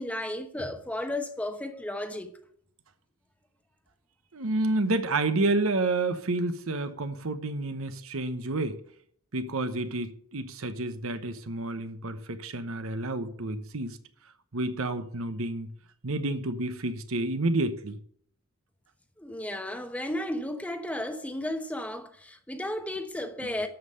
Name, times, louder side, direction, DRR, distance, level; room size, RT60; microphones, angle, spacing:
voice 1, 0.0-2.3 19.2-23.7, left 1 dB, 5° left, 0.9 m, -34 dB
voice 2, 4.3-8.8 9.3-14.0 14.5-15.7 16.0-18.0 23.4-23.5, right 2 dB, 65° right, 1.0 m, -29 dB
13.0 x 5.6 x 6.8 m
head